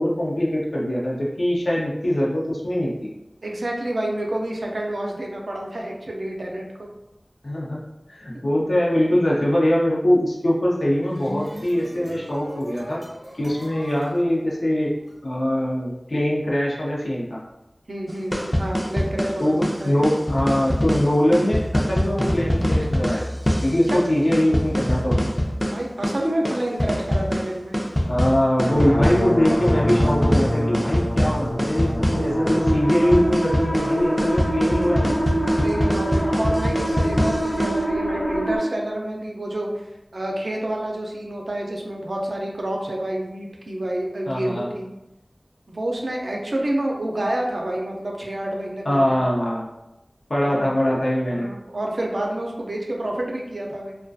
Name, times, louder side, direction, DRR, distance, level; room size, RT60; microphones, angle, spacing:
voice 1, 0.0-3.1 7.4-7.8 8.1-13.0 13.4-14.9 15.2-17.4 19.4-23.2 23.6-25.3 28.1-35.2 44.3-44.7 48.9-49.7 50.3-51.5, left 1 dB, 85° left, -5 dB, 0.6 m, -22 dB
voice 2, 3.4-6.9 17.9-20.0 23.9-24.0 25.7-27.8 32.9-33.5 35.6-44.9 45.7-49.2 50.4-50.6 51.3-54.0, right 1 dB, 90° right, 0 dB, 0.4 m, -28 dB
sound 1, 11.1-15.1, equal, 45° right, 0.6 m, -39 dB
sound 2, 18.1-37.8, equal, 20° left, 0.4 m, -24 dB
sound 3, 28.6-38.6, equal, 60° left, 0.9 m, -25 dB
2.3 x 2.2 x 2.5 m, 0.95 s
wide cardioid pair, 55°, 0 cm